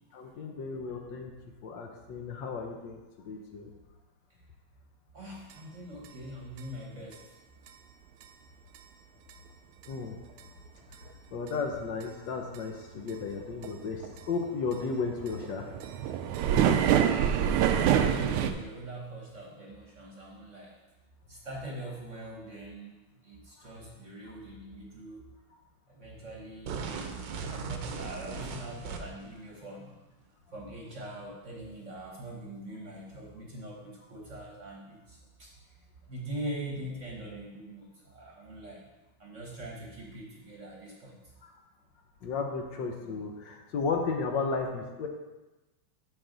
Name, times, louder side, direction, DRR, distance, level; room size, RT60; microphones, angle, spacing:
voice 1, 0.1-1.3 1.6-3.7 9.9-10.2 11.3-15.7 23.6-23.7 41.4-41.5 42.2-45.1, left 4 dB, 70° left, 3 dB, 1.3 m, -34 dB
voice 2, 5.1-7.4 17.7-20.8 21.3-25.2 25.9-26.9 27.5-30.0 30.5-35.5 36.1-38.9 39.2-41.2, right 1 dB, 45° right, -2 dB, 1.2 m, -43 dB
sound 1, 5.5-5.6 6.1-6.2 6.6-6.7 7.1-7.2 7.7-7.8 8.2-8.3 8.8-8.9 9.3-9.4 9.8-9.9 10.4-10.5 10.9-11.0 11.5-11.6 12.0-12.1 12.5-12.6 13.1-13.4 13.6-13.7 14.0-18.5, right 9 dB, 90° right, 1.5 m, -26 dB
sound 2, 26.7-29.3, right 5 dB, 70° right, 1.3 m, -37 dB
12.0 x 4.2 x 3.9 m, 1.1 s
omnidirectional pair, 2.3 m